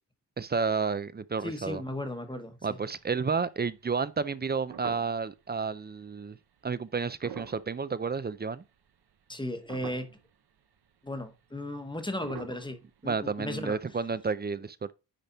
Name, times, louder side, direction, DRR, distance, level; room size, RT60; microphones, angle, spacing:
voice 1, 0.4-1.8 2.6-6.4 6.6-8.6 13.0-14.9, right 5 dB, 25° right, 0.4 m, -31 dB
voice 2, 1.4-2.8 9.3-10.1 11.0-13.8, left 1 dB, 10° left, 1.0 m, -36 dB
sound 1, 2.6-3.4 3.8-3.9 4.3-5.4 5.8-6.0 7.0-8.5 8.9-9.3 9.7-10.3 10.8-10.9 11.1-11.3 12.1-13.7 14.0-14.1, right 8 dB, 70° right, 0.9 m, -46 dB
9.9 x 3.4 x 3.9 m
wide cardioid pair, 140°, 40 cm